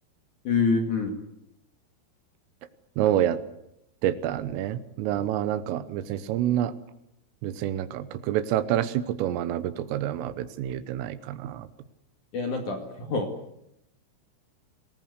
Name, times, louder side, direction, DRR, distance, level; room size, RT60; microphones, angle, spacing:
voice 1, 0.4-1.1 12.3-13.3, left 4 dB, 50° left, 3 dB, 2.8 m, -26 dB
voice 2, 3.0-3.4 4.0-6.7 7.4-11.7, right 11 dB, 80° right, 13 dB, 3.6 m, -27 dB
25.5 x 19.0 x 8.0 m, 0.81 s
omnidirectional pair, 6.0 m